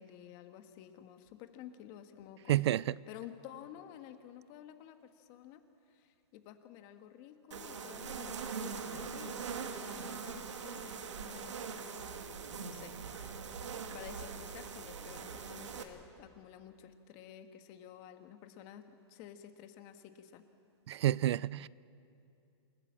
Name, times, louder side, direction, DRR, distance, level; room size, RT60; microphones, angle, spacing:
voice 1, 0.0-2.7 3.1-11.6 12.6-12.9 13.5-20.4, left 10 dB, 40° left, 1.7 m, -52 dB
voice 2, 2.5-3.0 20.9-21.7, right 13 dB, 70° right, 0.4 m, -29 dB
sound 1, 7.5-15.8, right 5 dB, 90° right, 2.2 m, -42 dB
28.0 x 16.0 x 7.5 m
hypercardioid pair, 135°, 15 cm